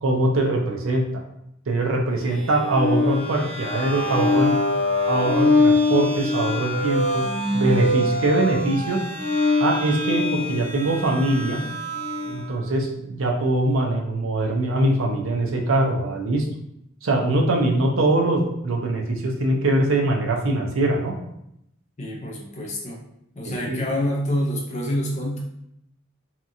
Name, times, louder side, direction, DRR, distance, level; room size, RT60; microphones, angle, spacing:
voice 1, 0.0-1.0 1.7-4.5 5.1-7.2 7.5-9.0 9.6-11.6 12.2-16.5 17.0-21.1 23.5-23.8, right 2 dB, 75° right, 1 dB, 0.5 m, -22 dB
sound 1, 2.3-12.5, left 2 dB, 40° right, 1.0 m, -23 dB
voice 2, 22.0-23.0 23.3-25.4, equal, 35° left, -2 dB, 0.6 m, -27 dB
2.8 x 2.3 x 2.6 m, 0.79 s
head